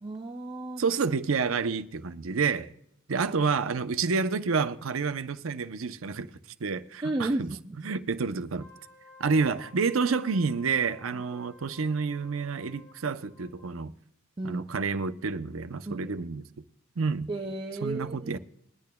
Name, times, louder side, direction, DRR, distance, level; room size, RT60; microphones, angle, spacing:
voice 1, 0.0-0.8 7.0-7.8 14.4-14.6 15.9-16.1 17.3-18.4, right 2 dB, 20° right, 0.5 m, -33 dB
voice 2, 0.8-2.7 3.1-6.3 6.6-7.5 7.8-8.7 9.2-13.9 14.4-16.4 17.0-17.3 17.8-18.4, right 5 dB, 85° right, 0.6 m, -29 dB
Wind instrument woodwind instrument, 8.5-13.7, left 3 dB, 80° left, 5.0 m, -54 dB
21.5 x 10.5 x 2.2 m
head